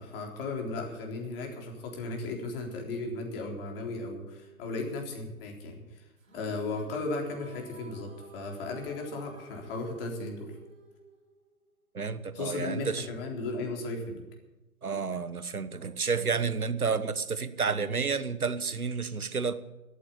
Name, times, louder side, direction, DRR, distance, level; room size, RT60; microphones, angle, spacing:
voice 1, 0.0-6.0 6.3-10.6 12.3-14.2, left 3 dB, 40° left, 2 dB, 3.8 m, -36 dB
sound 1, 6.2-11.7, right 3 dB, 70° right, 5.1 m, -51 dB
voice 2, 11.9-13.1 14.8-19.5, right 5 dB, 85° right, 13 dB, 1.1 m, -30 dB
13.5 x 9.5 x 8.4 m, 1.1 s
figure-of-eight pair, 120°, 43 cm